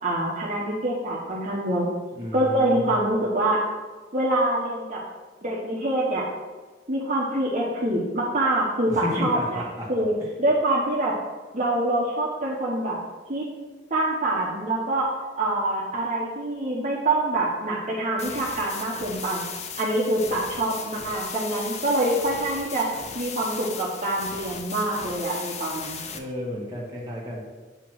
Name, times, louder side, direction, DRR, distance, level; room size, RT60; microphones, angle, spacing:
voice 1, 0.0-1.9 2.3-3.6 4.1-5.0 5.4-6.2 6.9-10.1 10.4-11.1 11.5-13.0 13.3-13.4 13.9-15.1 15.4-19.4 19.8-22.9 23.1-26.0, right 1 dB, 45° right, -5 dB, 1.0 m, -25 dB
voice 2, 2.1-3.0 8.8-9.9 26.1-27.4, left 1 dB, 20° right, -5 dB, 1.6 m, -32 dB
sound 1, 18.2-26.2, left 6 dB, 40° left, 0.6 m, -37 dB
8.0 x 3.0 x 6.2 m, 1.3 s
head